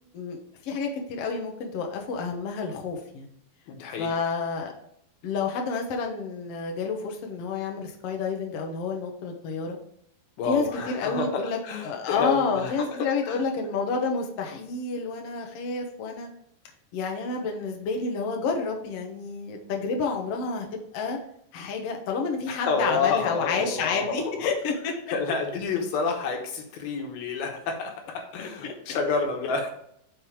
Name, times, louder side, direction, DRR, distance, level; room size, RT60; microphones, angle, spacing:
voice 1, 0.6-3.3 4.0-4.7 5.2-9.8 10.4-11.6 11.8-16.3 16.9-21.2 21.5-24.9 28.4-29.0, left 4 dB, 65° left, 2 dB, 1.6 m, -29 dB
voice 2, 3.7-4.1 10.4-13.4 22.5-24.5 25.1-29.7, left 4 dB, 85° left, 3 dB, 3.1 m, -29 dB
5.7 x 5.4 x 4.7 m, 0.71 s
omnidirectional pair, 4.1 m